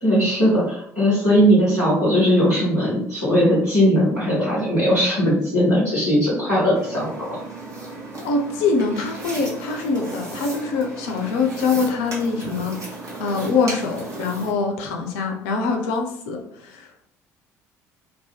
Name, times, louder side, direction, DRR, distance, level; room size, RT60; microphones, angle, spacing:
voice 1, 0.0-7.4, equal, 85° right, -8 dB, 1.1 m, -19 dB
sound 1, 6.7-14.5, right 2 dB, 40° right, 0.8 m, -35 dB
voice 2, 8.2-12.9 13.2-16.9, left 4 dB, 60° left, 3 dB, 0.4 m, -24 dB
2.5 x 2.2 x 2.3 m, 0.71 s
figure-of-eight pair, 55°, 8 cm